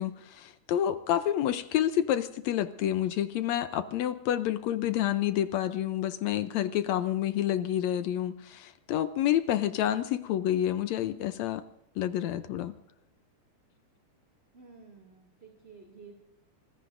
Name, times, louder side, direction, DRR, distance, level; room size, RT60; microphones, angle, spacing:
voice 1, 0.0-11.6 12.0-12.7, left 11 dB, 75° left, 11 dB, 1.7 m, -29 dB
voice 2, 14.5-16.2, right 4 dB, 20° right, 0 dB, 2.2 m, -52 dB
26.0 x 20.0 x 2.6 m, 0.84 s
omnidirectional pair, 3.6 m